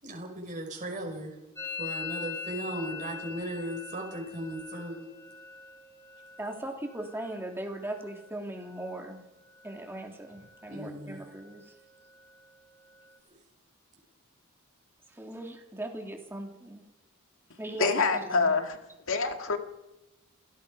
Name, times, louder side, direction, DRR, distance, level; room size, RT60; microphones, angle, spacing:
voice 1, 0.0-1.3 1.6-5.1 10.7-11.2, right 1 dB, 35° right, -1 dB, 5.4 m, -37 dB
Musical instrument, 1.6-9.2 9.5-10.0 10.3-10.9 11.2-13.2, left 6 dB, 15° left, 2.7 m, -44 dB
voice 2, 6.4-9.2 9.6-11.6 15.1-16.8 17.6-18.0 18.3-18.6, right 1 dB, 10° right, 2 dB, 3.2 m, -39 dB
voice 3, 17.8-18.8 19.1-19.6, left 4 dB, 65° left, 5 dB, 2.2 m, -26 dB
29.0 x 17.5 x 5.2 m, 0.96 s
head